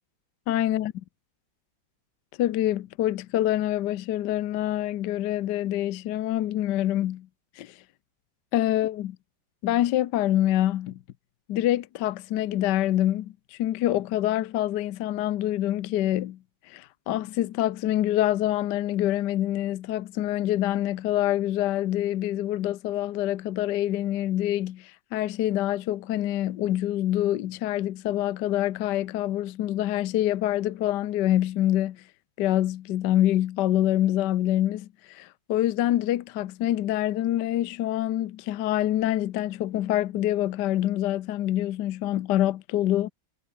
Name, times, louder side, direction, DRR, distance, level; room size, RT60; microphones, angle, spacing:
voice 1, 0.5-0.9 2.4-7.3 7.6-7.7 8.5-9.2 9.6-11.0 11.5-16.4 16.7-32.0 32.4-43.1, left 13 dB, 65° left, 1.3 m, -26 dB
omnidirectional pair, 2.2 m